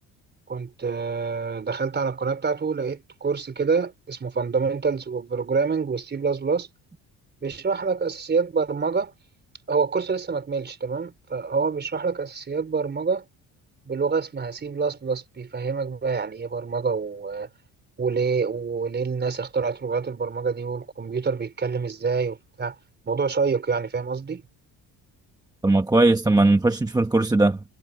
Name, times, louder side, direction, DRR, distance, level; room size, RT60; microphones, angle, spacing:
voice 1, 0.5-6.7 7.4-9.1 9.7-13.3 13.9-17.5 18.0-22.8 23.0-24.4, right 5 dB, 30° right, 4.2 m, -26 dB
voice 2, 25.6-27.6, right 2 dB, 10° right, 1.2 m, -19 dB
cardioid pair, 135°, 36 cm